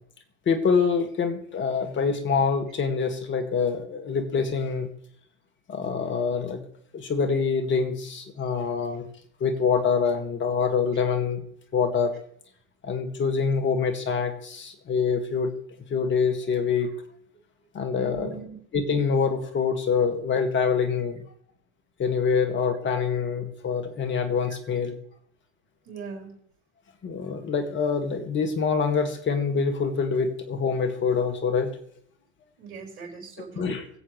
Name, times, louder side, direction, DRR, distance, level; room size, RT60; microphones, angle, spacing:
voice 1, 0.5-4.9 5.7-6.6 6.9-9.0 9.4-11.4 11.7-12.2 12.8-15.5 15.9-16.9 17.7-18.4 18.7-21.2 22.0-25.0 27.0-31.8 33.6-33.9, left 5 dB, 35° left, 8 dB, 2.0 m, -25 dB
voice 2, 17.9-18.6 25.8-26.3 32.6-33.7, right 5 dB, 60° right, -1 dB, 5.1 m, -40 dB
24.0 x 8.2 x 3.2 m, 0.66 s
hypercardioid pair, 90°, 35 cm